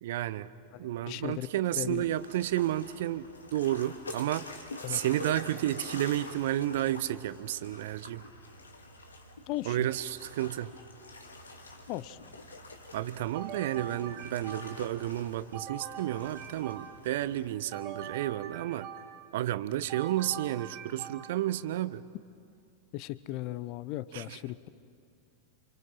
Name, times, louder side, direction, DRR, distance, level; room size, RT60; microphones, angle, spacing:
voice 1, 0.0-0.5 0.8-8.2 9.6-10.7 12.9-18.9 19.3-22.1 24.1-24.4, right 13 dB, 55° right, 17 dB, 0.7 m, -31 dB
voice 2, 0.7-1.5 1.8-2.0 4.8-5.0 9.5-9.8 11.9-12.2 22.9-24.7, left 16 dB, 45° left, 17 dB, 0.8 m, -37 dB
sound 1, 2.0-17.5, left 2 dB, 75° left, 2.3 m, -47 dB
sound 2, 13.3-15.0 15.5-17.2 17.7-19.4 19.9-21.6, right 8 dB, 35° right, 2.2 m, -44 dB
28.5 x 26.5 x 5.8 m, 2.4 s
figure-of-eight pair, 90°, 0 cm